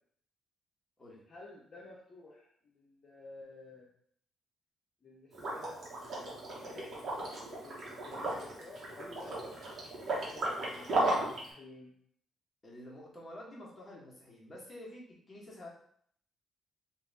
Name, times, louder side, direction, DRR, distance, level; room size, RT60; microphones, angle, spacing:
voice 1, 1.3-3.9 5.0-9.3 9.9-11.9, left 2 dB, 40° left, -5 dB, 0.8 m, -52 dB
Liquid, 5.3-11.5, right 2 dB, 50° right, 1.3 m, -35 dB
voice 2, 12.6-15.7, left 1 dB, 20° left, -5 dB, 1.5 m, -49 dB
3.3 x 2.6 x 3.5 m, 0.63 s
cardioid pair, 90°, 0 cm